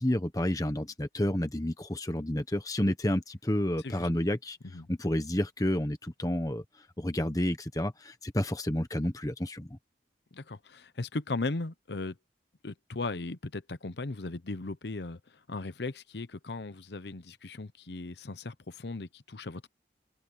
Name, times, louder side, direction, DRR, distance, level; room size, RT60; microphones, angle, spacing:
voice 1, 0.0-4.6 4.9-6.6 7.0-9.8, left 1 dB, 20° left, 1.2 m, -30 dB
voice 2, 10.3-12.1 12.6-15.2 15.5-19.7, left 3 dB, 75° left, 0.9 m, -37 dB
open air
head